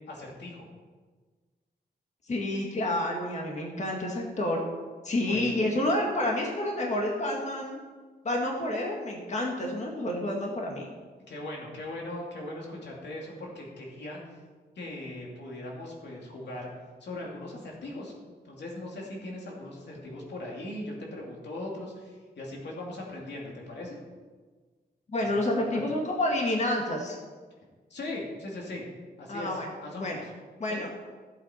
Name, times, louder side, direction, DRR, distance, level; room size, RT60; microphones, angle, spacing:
voice 1, 0.1-0.7 5.3-5.6 11.3-14.2 14.8-16.7 17.0-24.0 25.2-25.8 27.9-28.8 29.2-30.3 30.7-30.8, left 1 dB, 90° left, -2 dB, 2.7 m, -39 dB
voice 2, 2.3-4.6 5.0-7.8 8.2-10.9 25.1-27.2 29.3-29.7 29.9-30.2 30.6-30.9, left 1 dB, 45° left, -1 dB, 1.8 m, -29 dB
15.5 x 7.7 x 4.5 m, 1.4 s
wide cardioid pair, 140°, 17 cm